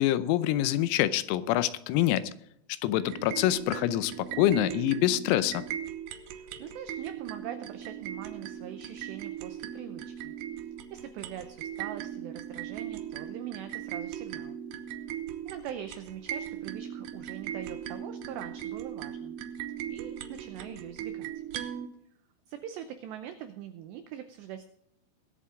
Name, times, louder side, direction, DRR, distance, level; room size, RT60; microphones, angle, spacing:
voice 1, 0.0-2.3 2.8-5.7, left 13 dB, 90° left, 15 dB, 3.5 m, -26 dB
sound 1, 3.0-21.9, right 10 dB, 75° right, 2.7 m, -39 dB
voice 2, 6.3-14.6 15.4-19.4 19.9-21.3 22.5-24.6, right 10 dB, 90° right, 8 dB, 2.4 m, -43 dB
21.0 x 8.3 x 3.7 m, 0.77 s
omnidirectional pair, 6.0 m